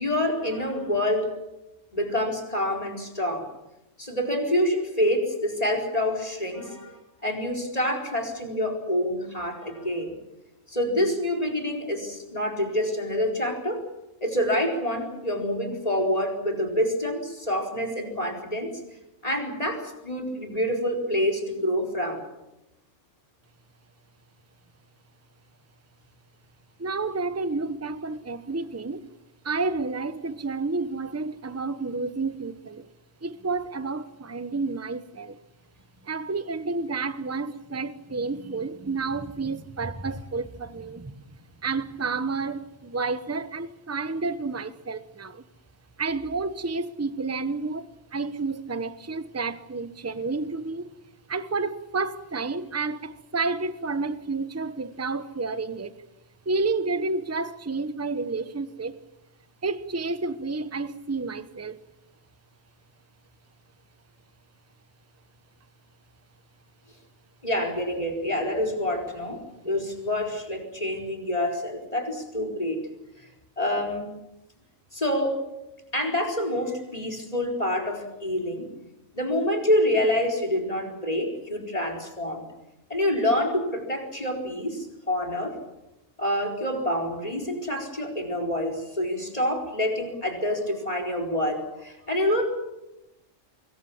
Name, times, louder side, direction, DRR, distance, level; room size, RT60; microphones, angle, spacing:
voice 1, 0.0-1.4 1.9-3.5 4.0-10.1 10.7-13.8 14.2-18.7 19.2-22.2 67.4-72.8 73.6-74.1 74.9-75.5 75.9-78.7 79.1-82.5 82.9-85.6 86.2-92.5, left 1 dB, 30° left, 4.6 m, -27 dB
voice 2, 26.8-29.1 29.4-32.9 33.2-35.4 36.0-41.3 41.6-45.4 46.0-50.9 51.3-55.9 56.4-59.0 59.6-61.8, right 3 dB, 15° right, 0.9 m, -30 dB
25.5 x 22.0 x 7.2 m
omnidirectional pair, 1.3 m